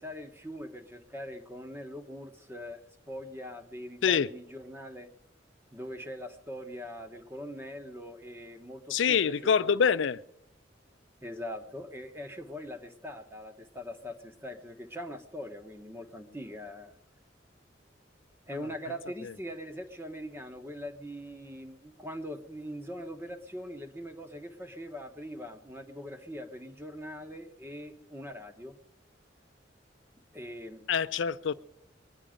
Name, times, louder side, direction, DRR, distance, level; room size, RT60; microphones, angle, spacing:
voice 1, 0.0-5.1 5.7-9.9 11.2-17.0 18.5-28.8 30.3-30.8, equal, 15° right, 5 dB, 1.2 m, -42 dB
voice 2, 8.9-10.2 30.9-31.5, left 7 dB, 80° left, 14 dB, 0.4 m, -25 dB
22.5 x 10.0 x 5.1 m, 0.79 s
head